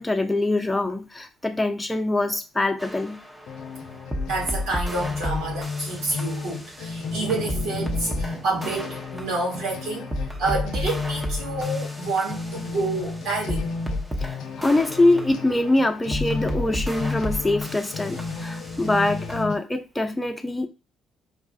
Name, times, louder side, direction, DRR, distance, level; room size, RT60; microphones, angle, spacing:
voice 1, 0.0-3.2 14.2-20.7, left 2 dB, 15° left, 0.5 m, -24 dB
sound 1, 2.8-19.4, left 1 dB, 15° right, 0.9 m, -33 dB
sound 2, 3.5-19.5, left 4 dB, 75° left, 0.5 m, -33 dB
voice 2, 4.2-13.9 14.6-14.7, right 2 dB, 75° right, 1.7 m, -29 dB
4.7 x 2.4 x 2.4 m
supercardioid pair, 60°, 0 cm